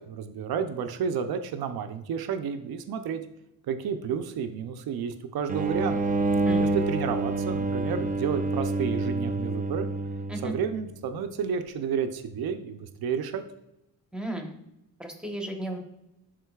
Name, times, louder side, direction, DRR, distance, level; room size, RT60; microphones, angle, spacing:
voice 1, 0.1-3.2 3.7-6.0 6.5-9.9 10.4-13.4, right 7 dB, 80° right, 8 dB, 0.6 m, -31 dB
sound 1, 5.5-10.9, right 2 dB, 25° right, 0.4 m, -27 dB
voice 2, 6.5-6.8 10.3-10.5 14.1-14.5 15.0-15.8, right 1 dB, ahead, 3 dB, 1.0 m, -34 dB
11.0 x 3.7 x 2.3 m, 0.86 s
cardioid pair, 95°, 36 cm